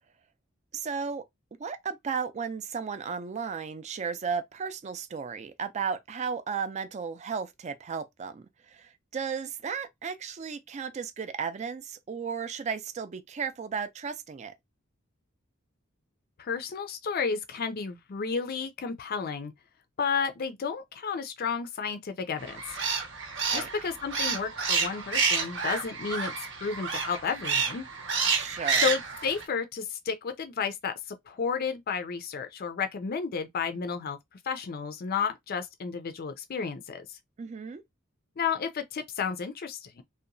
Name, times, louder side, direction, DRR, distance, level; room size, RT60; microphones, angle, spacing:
voice 1, 0.7-1.3 1.6-14.5 23.5-23.7 28.2-28.9 37.4-37.8, right 6 dB, 35° right, 0.4 m, -34 dB
voice 2, 16.4-19.5 20.0-22.8 23.5-26.3 26.6-27.9 28.8-34.2 34.5-37.2 38.4-40.0, left 6 dB, 50° left, 0.4 m, -32 dB
sound 1, 22.4-29.4, right 5 dB, 65° right, 0.7 m, -29 dB
2.8 x 2.1 x 2.5 m
head